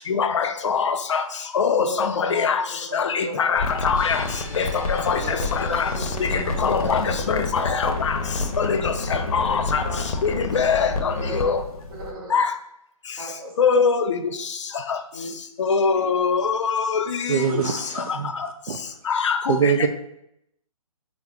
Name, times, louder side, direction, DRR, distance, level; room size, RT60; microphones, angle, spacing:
voice 1, 0.1-1.2 1.5-2.6 2.9-4.2 4.6-5.2 5.6-5.8 6.3-8.1 8.6-9.8 10.2-11.6 12.3-12.5 13.6-14.2 15.6-17.0 19.1-19.3 19.6-19.7, left 5 dB, 55° left, 7 dB, 0.4 m, -22 dB
voice 2, 1.8-2.5 2.9-3.5 5.2-7.4 9.8-11.6 11.9-12.3 13.2-13.8 14.9-15.3 15.9-16.1, right 1 dB, 40° right, -5 dB, 1.2 m, -36 dB
sound 1, 3.5-12.1, left 3 dB, 85° left, 0.8 m, -29 dB
sound 2, 3.9-9.0, right 1 dB, 5° right, 0.5 m, -43 dB
voice 3, 17.3-18.3 18.7-18.8 19.5-19.9, right 7 dB, 75° right, 6 dB, 0.4 m, -23 dB
4.6 x 2.0 x 3.5 m, 0.78 s
hypercardioid pair, 165°, 19 cm